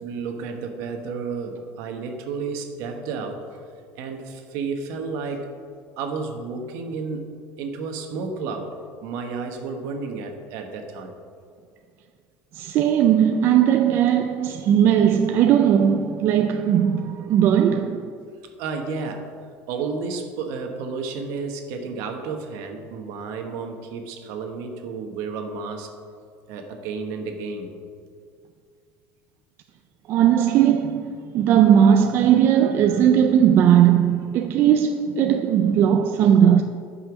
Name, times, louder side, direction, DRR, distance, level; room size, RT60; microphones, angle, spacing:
voice 1, 0.0-3.6 3.9-5.5 6.0-8.7 9.0-11.1 18.6-19.3 19.7-25.9 26.5-27.7 31.2-31.3, right 4 dB, 60° right, 1.3 m, -32 dB
voice 2, 12.6-18.1 30.1-36.6, right 9 dB, 40° right, 0.4 m, -18 dB
11.0 x 5.6 x 6.1 m
cardioid pair, 165°, 6 cm